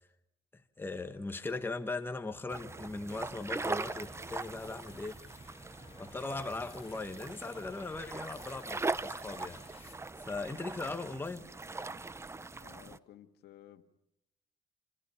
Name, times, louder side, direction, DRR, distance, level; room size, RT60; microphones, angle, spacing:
voice 1, 0.5-5.2 6.0-11.5, left 3 dB, 10° left, 1.5 m, -39 dB
sound 1, 2.5-13.0, right 3 dB, 15° right, 0.9 m, -40 dB
sound 2, 3.3-10.4, left 6 dB, 35° left, 2.0 m, -59 dB
voice 2, 12.6-13.8, left 12 dB, 75° left, 2.0 m, -55 dB
28.5 x 26.5 x 5.8 m
cardioid pair, 110°, 17 cm